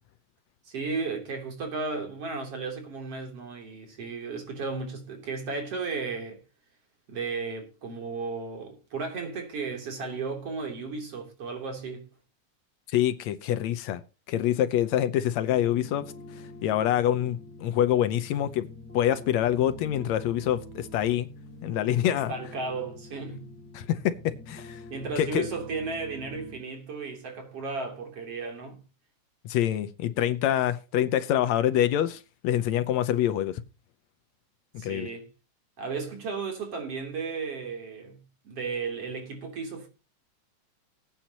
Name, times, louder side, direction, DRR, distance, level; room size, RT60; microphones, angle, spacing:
voice 1, 0.7-6.4 7.1-12.1 22.1-23.6 24.9-28.8 34.8-35.3 35.8-39.9, right 4 dB, 55° right, 4.2 m, -34 dB
voice 2, 12.9-14.0 14.3-16.1 16.6-18.7 18.9-21.3 21.6-22.3 23.7-24.8 25.2-25.5 29.5-33.6 34.7-35.1, left 11 dB, 75° left, 2.0 m, -26 dB
sound 1, 15.5-26.6, left 1 dB, 20° left, 3.6 m, -45 dB
19.5 x 9.1 x 2.9 m
omnidirectional pair, 3.3 m